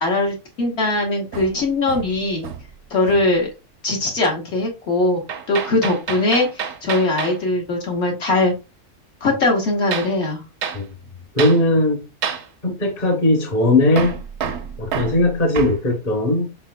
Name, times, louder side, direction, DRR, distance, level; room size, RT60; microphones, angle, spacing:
voice 1, 0.0-2.5 2.9-3.5 3.8-5.2 5.5-8.5 9.2-10.4, left 2 dB, 60° left, 1.4 m, -20 dB
Hammer, 1.3-2.8 3.1-3.4 5.3-7.4 9.9-10.2 10.6-10.8 11.4-11.6 12.2-12.5 14.0-15.8, right 7 dB, 70° right, 0.8 m, -29 dB
voice 2, 11.3-12.0 12.6-14.2 14.8-16.5, left 1 dB, 35° left, 1.0 m, -18 dB
4.2 x 4.0 x 2.2 m
omnidirectional pair, 1.3 m